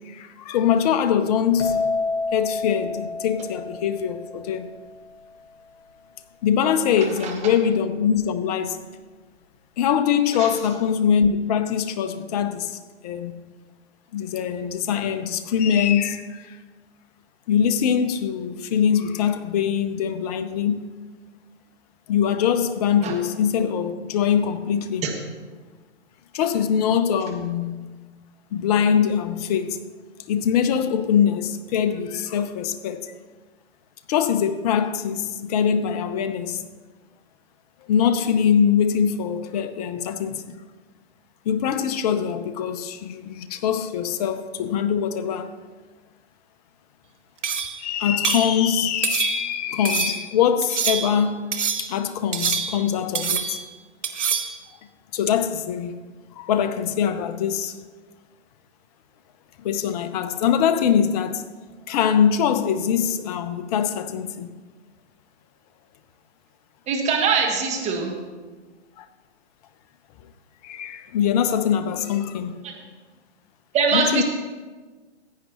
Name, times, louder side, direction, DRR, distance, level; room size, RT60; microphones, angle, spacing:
voice 1, 0.1-2.0 2.3-4.7 6.4-8.8 9.8-13.3 14.1-16.6 17.5-20.9 22.1-25.1 26.3-27.9 28.5-29.8 30.3-33.1 34.1-36.6 37.9-40.6 41.5-45.5 47.8-51.5 51.8-53.6 55.1-55.9 56.4-57.7 59.6-61.4 61.9-64.5 69.0-69.1 70.6-72.6 73.9-74.2, left 8 dB, 35° left, 0.7 m, -23 dB
sound 1, 1.6-5.2, left 3 dB, 65° left, 1.9 m, -29 dB
sound 2, 47.4-47.8 48.2-48.5 49.0-49.6 49.9-50.2 50.6-51.2 51.5-52.0 52.3-52.9 53.2-53.7 54.0-54.6, right 6 dB, 85° right, 1.1 m, -26 dB
voice 2, 66.9-68.1 73.7-74.2, right 5 dB, 20° right, 1.6 m, -22 dB
15.0 x 9.2 x 3.0 m
hypercardioid pair, 130°, 35 cm